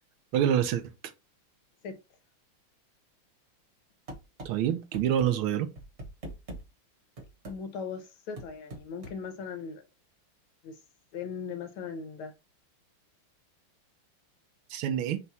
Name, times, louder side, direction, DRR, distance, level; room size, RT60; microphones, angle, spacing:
voice 1, 0.3-0.9 4.4-5.7 14.7-15.2, right 9 dB, 75° right, 1.4 m, -26 dB
sound 1, 4.1-4.5 4.9-5.3 5.8-6.6 7.2-7.6 8.4-9.2, right 1 dB, 40° right, 1.2 m, -41 dB
voice 2, 7.5-9.8 10.6-10.8 11.1-12.3, left 6 dB, 80° left, 1.5 m, -38 dB
4.4 x 2.3 x 4.0 m
omnidirectional pair, 2.4 m